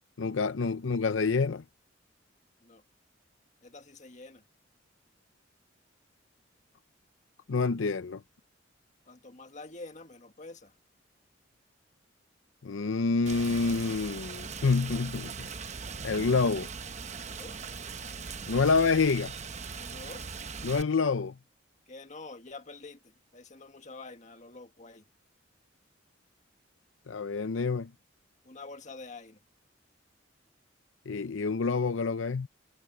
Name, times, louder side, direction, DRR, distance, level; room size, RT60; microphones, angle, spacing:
voice 1, 0.2-1.6 7.5-8.2 12.6-15.5 16.0-16.7 18.5-19.3 20.6-21.3 27.1-27.9 31.1-32.5, left 4 dB, 80° left, 0.6 m, -27 dB
voice 2, 3.6-4.4 9.1-10.7 17.2-17.6 19.7-20.2 21.9-25.0 28.4-29.4, left 3 dB, 40° left, 1.7 m, -47 dB
Rain, 13.3-20.8, right 5 dB, 35° right, 0.9 m, -40 dB
head